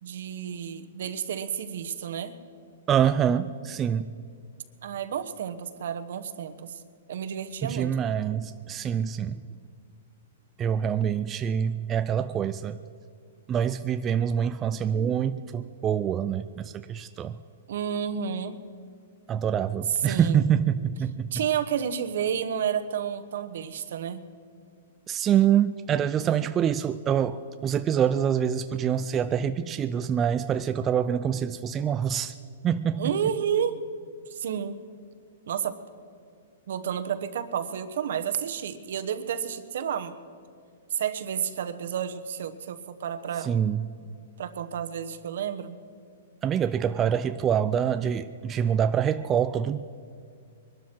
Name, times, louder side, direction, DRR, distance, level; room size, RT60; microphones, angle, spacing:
voice 1, 0.0-2.3 4.8-6.8 7.1-7.9 17.7-18.6 20.0-20.5 21.3-24.3 32.9-33.7 34.3-34.8 35.5-35.7 36.7-40.1 40.9-43.6 44.4-45.8, right 8 dB, 70° right, 10 dB, 1.1 m, -31 dB
voice 2, 2.9-4.1 7.6-9.4 10.6-12.8 13.5-17.4 19.3-21.3 25.1-32.4 32.6-33.1 43.4-43.8 46.4-49.8, right 8 dB, 20° right, 10 dB, 0.4 m, -25 dB
22.0 x 12.5 x 4.6 m, 2.2 s
hypercardioid pair, 150°, 0 cm